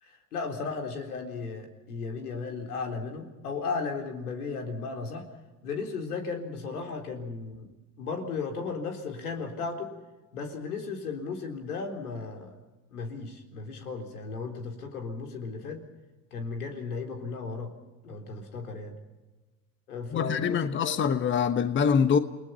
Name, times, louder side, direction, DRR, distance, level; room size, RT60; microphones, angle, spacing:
voice 1, 0.0-5.3 5.6-7.7 8.0-9.9 10.3-12.5 12.9-15.8 16.3-17.7 18.0-19.0 19.9-21.1, left 4 dB, 85° left, 4.0 m, -35 dB
voice 2, 20.1-22.2, left 7 dB, 25° left, 1.2 m, -24 dB
29.0 x 19.5 x 5.7 m
hypercardioid pair, 90°, 44 cm